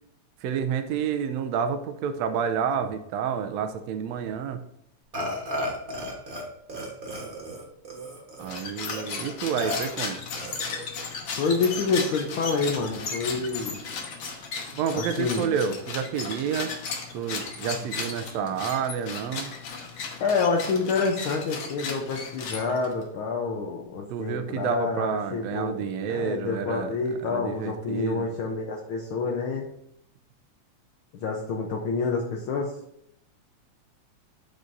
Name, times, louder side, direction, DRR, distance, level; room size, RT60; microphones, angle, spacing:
voice 1, 0.4-4.6 8.4-10.2 14.7-16.7 17.1-19.5 24.1-26.9 27.3-28.3, right 7 dB, 75° right, 9 dB, 1.8 m, -29 dB
Burping eructation, 5.1-6.4 6.7-8.5 8.9-9.0 9.6-9.8 10.3-10.9, equal, 50° right, 0.6 m, -34 dB
sound 1, 8.4-23.0, left 5 dB, 60° left, 1.4 m, -35 dB
voice 2, 11.4-13.8 14.9-15.5 20.2-29.7 31.2-32.7, left 4 dB, 75° left, 0 dB, 1.2 m, -28 dB
12.5 x 5.0 x 2.7 m, 0.73 s
omnidirectional pair, 3.4 m